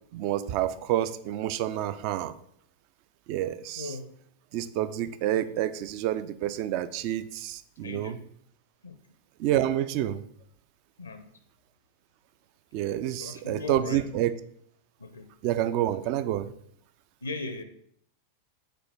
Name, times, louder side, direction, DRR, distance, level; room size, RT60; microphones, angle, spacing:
voice 1, 0.1-2.4 3.3-3.9 4.5-8.2 9.4-10.2 12.7-14.4 15.4-16.5, right 12 dB, 45° right, 14 dB, 0.3 m, -28 dB
voice 2, 3.8-4.2 5.3-5.5 7.8-8.3 8.8-8.9 11.0-11.3 13.2-14.0 15.0-15.3 17.2-17.6, left 3 dB, 80° left, 9 dB, 0.5 m, -38 dB
5.1 x 4.3 x 4.5 m, 0.67 s
figure-of-eight pair, 90°, 0 cm